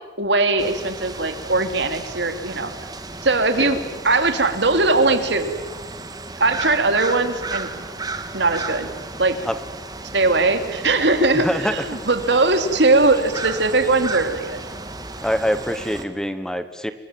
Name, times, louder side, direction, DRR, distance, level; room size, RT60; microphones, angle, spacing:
voice 1, 0.2-2.7 3.2-5.5 6.4-7.7 8.3-8.9 9.2-9.4 10.1-14.6, right 3 dB, 75° right, 7 dB, 3.0 m, -20 dB
sound 1, 0.6-16.0, right 3 dB, 20° right, 2.1 m, -34 dB
voice 2, 11.4-11.7 15.2-16.9, equal, 5° left, 10 dB, 1.1 m, -24 dB
29.5 x 23.5 x 7.6 m, 1.2 s
head